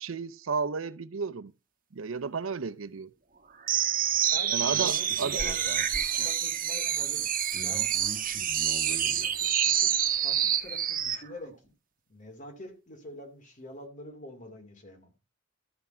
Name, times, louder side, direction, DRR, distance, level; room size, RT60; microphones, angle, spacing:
voice 1, 0.0-1.5 1.9-3.1 4.5-5.4, right 5 dB, 90° right, 0.6 m, -33 dB
sound 1, 3.7-11.2, right 9 dB, 45° right, 1.4 m, -27 dB
voice 2, 4.3-5.7 6.2-7.9 8.2-8.5 8.8-11.7 12.1-15.1, left 1 dB, 40° left, 2.6 m, -46 dB
13.0 x 6.0 x 4.4 m
head